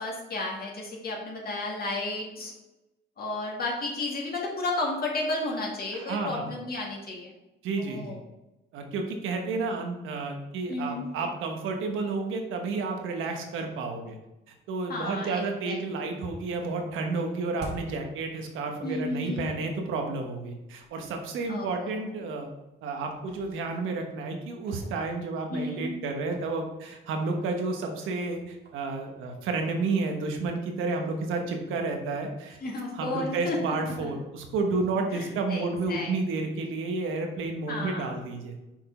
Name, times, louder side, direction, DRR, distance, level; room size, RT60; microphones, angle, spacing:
voice 1, 0.0-2.5 3.2-7.3 7.8-8.2 10.7-11.1 14.9-15.8 18.8-19.5 21.5-22.0 25.5-25.9 32.6-33.6 34.0-34.1 35.1-36.1 37.7-38.1, left 2 dB, 50° left, -1 dB, 2.1 m, -33 dB
voice 2, 5.9-6.5 7.6-8.2 8.7-14.2 14.7-22.5 22.8-32.6 32.9-38.5, right 3 dB, 90° right, 3 dB, 1.2 m, -31 dB
sound 1, 15.6-15.9 16.1-19.0 19.3-19.4 20.2-20.3 20.8-20.9 21.2-21.4 22.1-22.6 23.0-25.6 26.1-30.0, right 1 dB, 55° right, 1.6 m, -50 dB
6.0 x 4.7 x 4.3 m, 0.97 s
cardioid pair, 90°, 20 cm